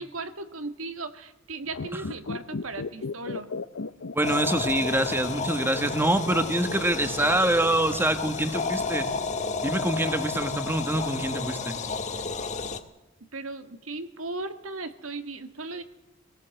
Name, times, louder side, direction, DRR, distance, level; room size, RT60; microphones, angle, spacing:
voice 1, 0.0-3.5 13.3-15.8, right 3 dB, 90° right, 9 dB, 1.8 m, -37 dB
sound 1, 1.7-5.1 5.3-5.4, left 4 dB, 70° left, 0.7 m, -35 dB
voice 2, 4.1-9.1 9.6-11.8, right 1 dB, 10° right, 10 dB, 1.4 m, -25 dB
sound 2, 4.2-12.8, left 4 dB, 35° left, 1.5 m, -31 dB
22.0 x 18.0 x 7.8 m, 0.92 s
head